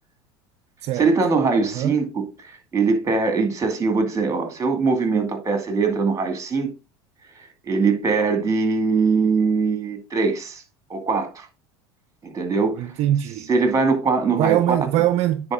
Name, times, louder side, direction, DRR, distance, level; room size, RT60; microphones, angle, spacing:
voice 1, 0.9-6.7 7.6-10.6 10.9-11.5 12.2-12.9 13.5-14.8, right 4 dB, 25° right, 2.3 m, -22 dB
voice 2, 12.8-13.5 14.3-15.5, right 12 dB, 55° right, 0.6 m, -22 dB
9.6 x 4.3 x 3.8 m
hypercardioid pair, 90°, 14 cm